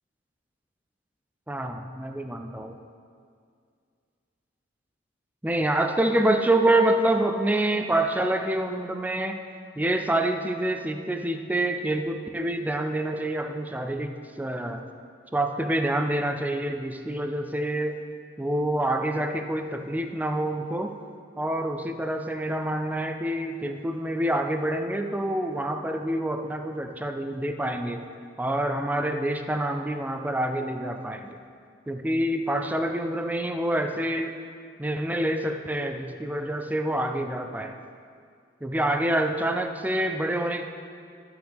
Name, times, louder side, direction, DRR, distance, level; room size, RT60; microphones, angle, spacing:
voice 1, 1.5-2.8 5.4-9.4 9.8-14.8 15.3-18.0 18.4-20.9 21.4-28.0 28.4-31.3 31.9-34.3 34.8-37.8 38.6-40.6, right 1 dB, 10° right, 6 dB, 0.4 m, -27 dB
12.0 x 7.9 x 3.5 m, 2.2 s
head